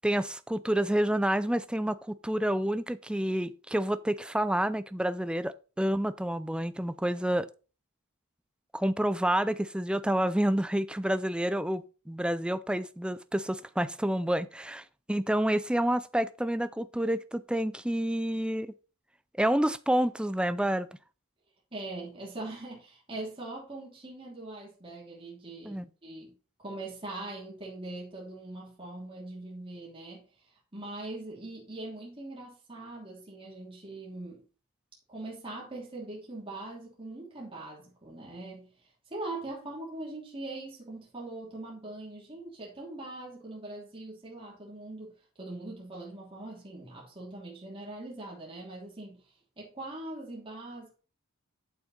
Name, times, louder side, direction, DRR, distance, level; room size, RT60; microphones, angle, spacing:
voice 1, 0.0-7.5 8.7-18.7 19.3-20.9 25.6-25.9, right 1 dB, 5° right, 0.4 m, -29 dB
voice 2, 21.7-30.2 30.7-34.4 35.1-38.7 39.1-49.2 49.6-50.9, right 2 dB, 25° right, 3.1 m, -42 dB
8.9 x 7.5 x 4.2 m
head